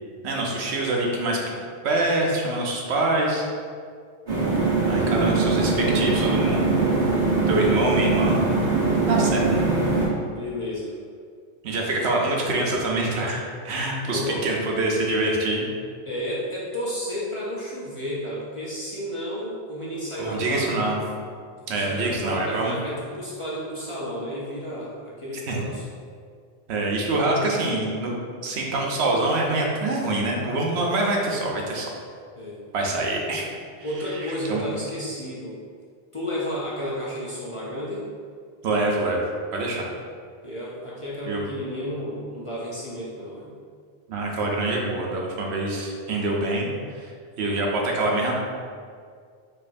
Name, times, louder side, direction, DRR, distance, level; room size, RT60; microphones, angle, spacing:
voice 1, 0.2-1.4 1.8-3.5 4.9-6.8 7.5-8.5 9.1-9.7 11.6-15.7 20.2-21.0 21.7-22.8 25.5-25.6 26.7-31.9 32.7-33.5 34.1-34.6 38.6-39.2 39.5-39.9 41.3-41.4 44.1-48.4, right 2 dB, 90° right, -1 dB, 0.9 m, -25 dB
sound 1, 4.3-10.1, right 3 dB, 50° right, 1.1 m, -22 dB
voice 2, 10.2-10.9 14.1-14.6 16.0-20.8 21.7-25.9 32.4-32.6 33.8-35.6 36.1-38.1 40.4-43.5, equal, 40° left, -7 dB, 0.5 m, -32 dB
4.5 x 2.6 x 2.5 m, 2.1 s
omnidirectional pair, 1.1 m